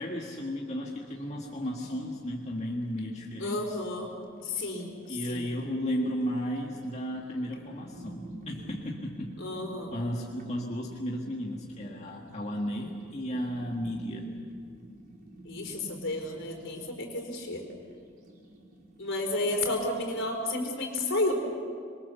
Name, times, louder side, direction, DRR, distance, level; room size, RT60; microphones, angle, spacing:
voice 1, 0.0-3.8 5.1-9.3 9.9-14.3, equal, 35° left, -2 dB, 1.9 m, -34 dB
sound 1, 1.1-20.3, right 1 dB, 45° right, 4.0 m, -50 dB
voice 2, 3.4-4.1 4.4-5.5 9.4-9.9 15.4-17.6 19.0-21.4, left 2 dB, 65° left, 3 dB, 4.5 m, -32 dB
26.5 x 22.5 x 7.1 m, 2.2 s
head